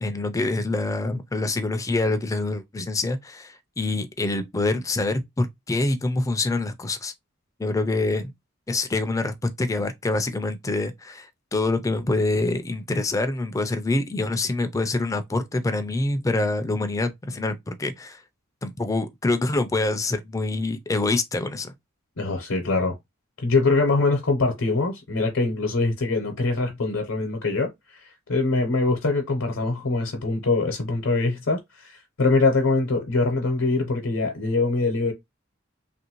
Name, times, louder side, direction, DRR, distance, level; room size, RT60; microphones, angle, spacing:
voice 1, 0.0-7.1 7.6-8.3 8.7-11.3 11.5-18.2 18.6-21.7, left 2 dB, 15° left, 0.3 m, -25 dB
voice 2, 22.2-22.9 23.4-35.1, left 3 dB, 80° left, 0.8 m, -23 dB
3.0 x 2.5 x 2.9 m
head